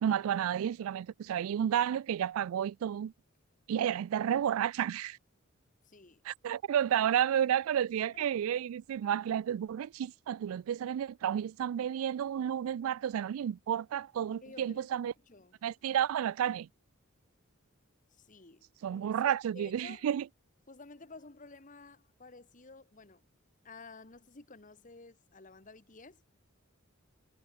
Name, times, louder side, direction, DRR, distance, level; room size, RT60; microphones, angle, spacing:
voice 1, 0.0-3.1 3.7-5.2 6.3-15.1 15.6-16.7 18.8-20.3, right 9 dB, 80° right, 0.3 m, -31 dB
voice 2, 5.8-6.3 8.1-8.3 14.4-15.6 18.1-20.1 20.7-23.2 23.6-26.2, left 3 dB, 40° left, 1.3 m, -52 dB
head